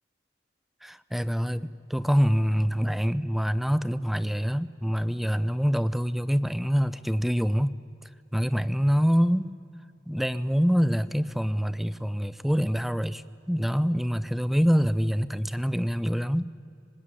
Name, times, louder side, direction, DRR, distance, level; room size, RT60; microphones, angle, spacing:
voice 1, 0.8-7.7 8.3-9.5 10.1-16.5, equal, ahead, 16 dB, 0.6 m, -25 dB
25.0 x 20.0 x 10.0 m, 2.5 s
head